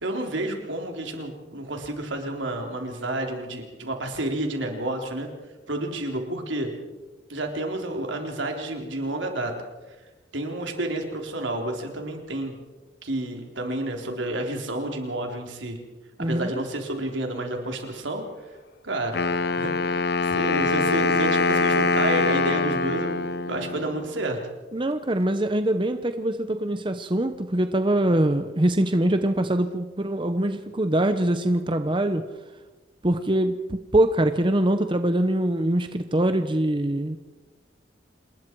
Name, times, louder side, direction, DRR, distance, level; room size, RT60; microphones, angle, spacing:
voice 1, 0.0-5.3 5.7-6.7 7.3-9.6 10.3-12.5 13.0-15.8 16.2-18.2 18.8-19.3 19.5-23.2 23.5-24.4, right 1 dB, 80° right, 3 dB, 3.8 m, -30 dB
voice 2, 16.2-16.6 24.7-32.2 33.0-37.2, right 1 dB, 25° right, 9 dB, 0.8 m, -23 dB
Wind instrument woodwind instrument, 19.1-24.1, left 3 dB, 55° left, 0.8 m, -24 dB
27.5 x 20.5 x 4.7 m, 1.2 s
head